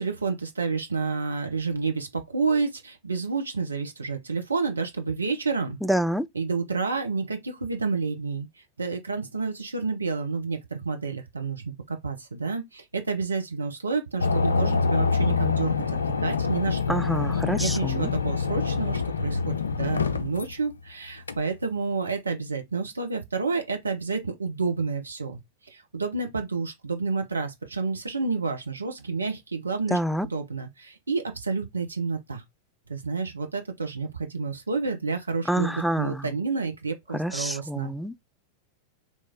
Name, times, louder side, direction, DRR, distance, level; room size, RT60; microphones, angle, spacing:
voice 1, 0.0-5.8 6.3-8.5 8.8-15.7 16.2-17.0 17.6-32.4 32.9-38.0, right 4 dB, 75° right, 0.7 m, -29 dB
voice 2, 5.8-6.3 16.9-18.1 29.9-30.3 35.5-36.2 37.1-38.1, right 1 dB, ahead, 0.4 m, -27 dB
sound 1, 14.2-20.5 21.3-21.4, left 5 dB, 75° left, 0.4 m, -25 dB
4.1 x 3.1 x 3.5 m
figure-of-eight pair, 90°, 0 cm